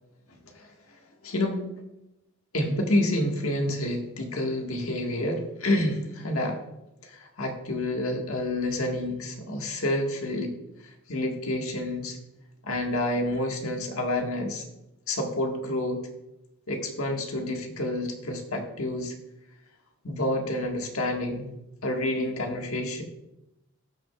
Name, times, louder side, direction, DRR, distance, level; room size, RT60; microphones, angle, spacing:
voice 1, 1.2-1.6 2.5-6.6 7.0-10.5 11.1-12.2 12.6-14.6 15.1-16.0 16.7-19.1 20.0-21.5 21.8-23.0, left 1 dB, 85° left, 2 dB, 1.6 m, -28 dB
18.0 x 6.1 x 2.3 m, 0.90 s
head